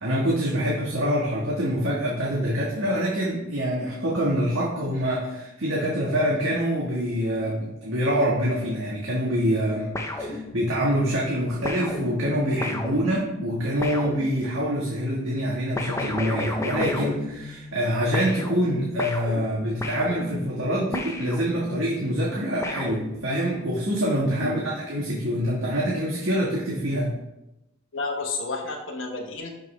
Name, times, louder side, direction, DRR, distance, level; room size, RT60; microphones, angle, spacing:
voice 1, 0.0-27.2, equal, 75° right, -4 dB, 1.6 m, -25 dB
sound 1, 9.9-10.9 11.6-14.8 15.8-17.9 18.1-21.9 22.6-23.6, left 2 dB, 15° left, 0.7 m, -33 dB
voice 2, 27.9-29.5, left 3 dB, 65° left, 0 dB, 1.4 m, -31 dB
11.5 x 5.4 x 3.3 m, 0.91 s
head